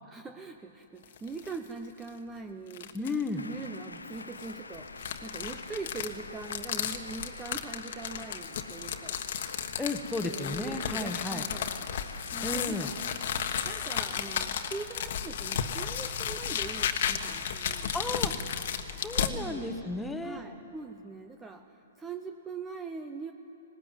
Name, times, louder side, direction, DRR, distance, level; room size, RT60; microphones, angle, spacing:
voice 1, 0.1-3.0 3.4-9.3 10.2-11.8 12.3-13.0 13.6-17.9 19.3-19.7 20.2-23.3, right 4 dB, 15° right, 7 dB, 0.8 m, -42 dB
sound 1, 1.0-1.6 2.0-2.1 2.7-3.3 4.1-19.3, left 8 dB, 55° left, 1.4 m, -34 dB
voice 2, 2.9-3.4 9.8-11.5 12.4-12.9 17.9-18.3 18.9-20.4, left 2 dB, 5° left, 7 dB, 1.4 m, -33 dB
sound 2, 3.4-13.7, left 3 dB, 90° left, 0.9 m, -46 dB
19.5 x 18.0 x 9.2 m, 2.9 s
figure-of-eight pair, 120°, 0 cm